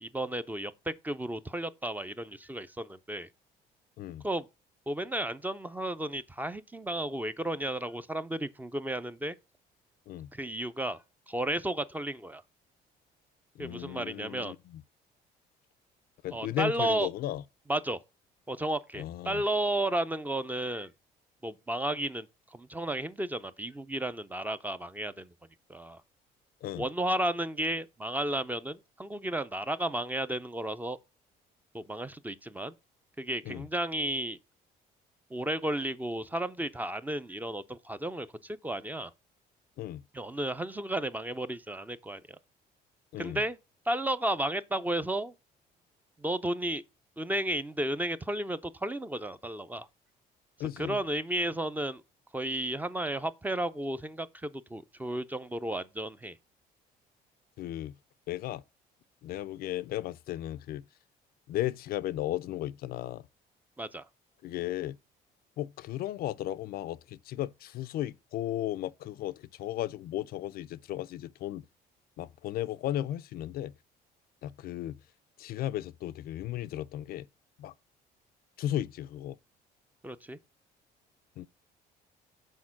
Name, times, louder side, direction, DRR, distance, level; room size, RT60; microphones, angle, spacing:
voice 1, 0.0-3.3 4.2-4.5 4.9-9.4 10.3-12.4 13.6-14.6 16.3-17.1 17.7-18.0 18.5-20.9 21.4-25.3 25.7-26.0 26.8-31.0 31.7-32.7 33.2-34.4 35.3-39.1 40.1-42.2 43.2-43.6 43.9-45.3 46.2-46.8 47.2-49.9 50.8-52.0 52.3-56.4 63.8-64.1 80.0-80.4, right 1 dB, 10° right, 0.4 m, -33 dB
voice 2, 13.6-14.8 16.2-17.4 19.0-19.4 26.6-26.9 33.4-33.7 39.8-40.0 43.1-43.4 50.6-51.0 57.6-57.9 58.3-58.6 59.2-60.8 61.5-63.3 64.4-65.0 65.6-71.6 72.2-73.7 74.4-75.0 75.4-77.3 77.6-77.7 78.6-79.4 81.4-81.5, left 13 dB, 60° left, 0.4 m, -35 dB
6.4 x 4.4 x 5.8 m
cardioid pair, 110°, 17 cm